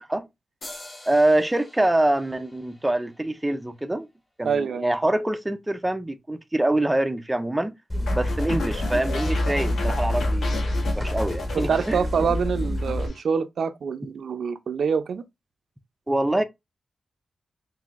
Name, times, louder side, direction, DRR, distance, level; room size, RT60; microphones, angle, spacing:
sound 1, 0.6-4.2, left 1 dB, 65° left, 2.2 m, -46 dB
voice 1, 1.1-4.1 4.4-7.7 8.1-10.7 10.9-12.3 16.1-16.4, right 1 dB, 10° right, 0.4 m, -25 dB
voice 2, 4.4-4.9 11.5-15.2, right 6 dB, 75° right, 0.5 m, -25 dB
sound 2, 7.9-13.1, left 1 dB, 25° left, 1.1 m, -27 dB
sound 3, 8.1-12.5 12.8-13.2, left 4 dB, 85° left, 1.0 m, -35 dB
5.5 x 2.6 x 2.5 m
wide cardioid pair, 160°, 0 cm